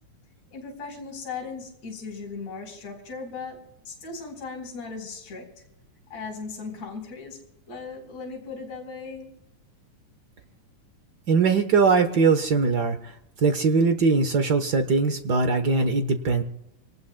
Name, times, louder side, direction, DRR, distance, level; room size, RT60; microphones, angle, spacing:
voice 1, 0.5-3.6 3.8-5.4 6.1-7.4 7.7-9.3, left 4 dB, 60° left, 0 dB, 5.0 m, -37 dB
voice 2, 11.3-13.0 13.4-16.4, right 4 dB, 75° right, 7 dB, 0.9 m, -21 dB
27.5 x 19.0 x 2.2 m, 0.82 s
omnidirectional pair, 3.4 m